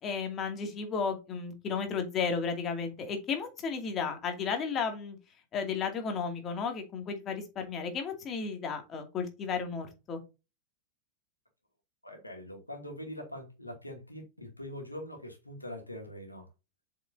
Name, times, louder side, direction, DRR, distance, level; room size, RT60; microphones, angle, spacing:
voice 1, 0.0-5.2 5.5-10.2, left 5 dB, 30° left, 2.5 m, -33 dB
voice 2, 12.0-16.5, left 1 dB, 85° left, 2.6 m, -43 dB
7.9 x 5.8 x 2.7 m
figure-of-eight pair, 90°, 0 cm